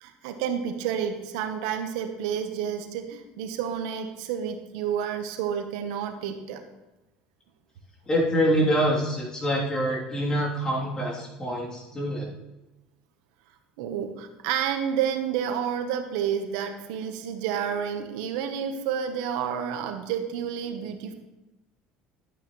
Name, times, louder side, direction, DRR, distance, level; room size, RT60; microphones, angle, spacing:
voice 1, 0.0-6.6 13.8-21.1, right 8 dB, 85° right, 7 dB, 1.1 m, -30 dB
voice 2, 8.1-12.3, equal, 20° left, -4 dB, 3.1 m, -25 dB
11.5 x 8.9 x 3.1 m, 1.0 s
cardioid pair, 120°, 3 cm